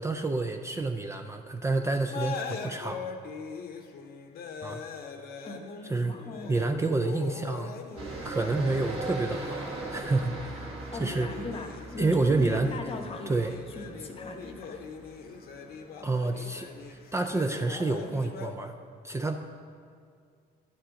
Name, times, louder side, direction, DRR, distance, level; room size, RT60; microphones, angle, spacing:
voice 1, 0.0-3.0 4.6-4.8 5.8-6.2 6.5-7.7 8.2-11.3 12.0-12.7 13.3-13.5 16.0-18.7 19.0-19.4, right 3 dB, 15° right, 4 dB, 0.4 m, -29 dB
sound 1, 1.9-18.5, left 5 dB, 65° left, 0.8 m, -41 dB
voice 2, 6.0-6.6 10.9-14.9, left 2 dB, 35° left, 5 dB, 1.0 m, -40 dB
sound 2, 8.0-18.3, right 2 dB, 35° right, 2.1 m, -41 dB
11.5 x 8.5 x 3.7 m, 2.3 s
cardioid pair, 110°, 17 cm